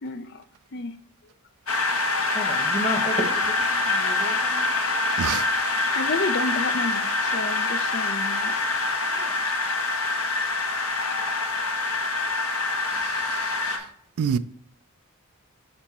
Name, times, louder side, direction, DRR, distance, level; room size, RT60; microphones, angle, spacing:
voice 1, 0.0-0.4 0.7-0.9 4.9-5.0 5.3-5.4 5.9-8.5 9.4-9.8, left 3 dB, 50° left, 0.5 m, -31 dB
sound 1, 1.7-13.8, left 3 dB, 70° left, 1.2 m, -25 dB
voice 2, 2.3-4.7 9.0-9.3, equal, 30° left, 1.2 m, -32 dB
voice 3, 12.9-13.8 14.2-14.4, right 7 dB, 80° right, 0.3 m, -28 dB
6.0 x 5.1 x 4.3 m
head